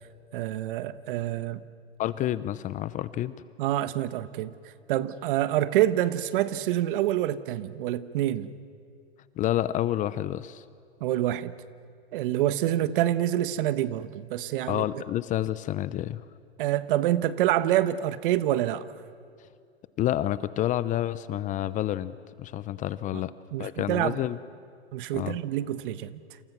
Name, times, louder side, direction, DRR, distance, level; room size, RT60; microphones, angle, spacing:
voice 1, 0.3-1.6 3.6-4.5 4.9-8.5 11.0-11.5 12.1-14.8 16.6-18.9 23.5-24.2 24.9-26.2, right 13 dB, 55° right, 14 dB, 1.3 m, -27 dB
voice 2, 2.0-3.3 9.4-10.6 14.7-16.2 20.0-23.3 23.6-24.4 25.1-25.4, left 13 dB, 25° left, 16 dB, 0.7 m, -29 dB
29.5 x 28.0 x 6.1 m, 2.3 s
hypercardioid pair, 120°, 32 cm